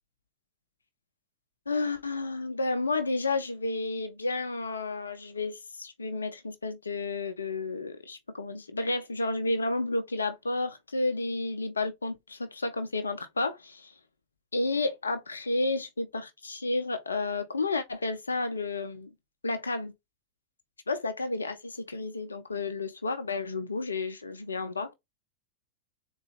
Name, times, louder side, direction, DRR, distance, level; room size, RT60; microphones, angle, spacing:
voice 1, 1.7-13.9 14.5-19.1 19.4-19.9 20.9-24.9, left 3 dB, 75° left, 0.5 m, -31 dB
3.9 x 2.3 x 2.4 m
figure-of-eight pair, 90°, 0 cm